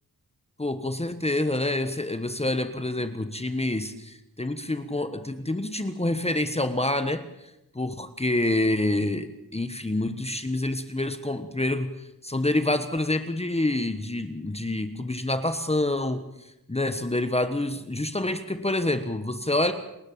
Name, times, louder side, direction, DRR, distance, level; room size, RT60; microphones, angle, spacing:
voice 1, 0.6-7.2 7.7-16.2 16.7-19.7, left 2 dB, 15° left, 10 dB, 1.3 m, -27 dB
29.5 x 13.0 x 8.7 m, 0.89 s
wide cardioid pair, 100°, 35 cm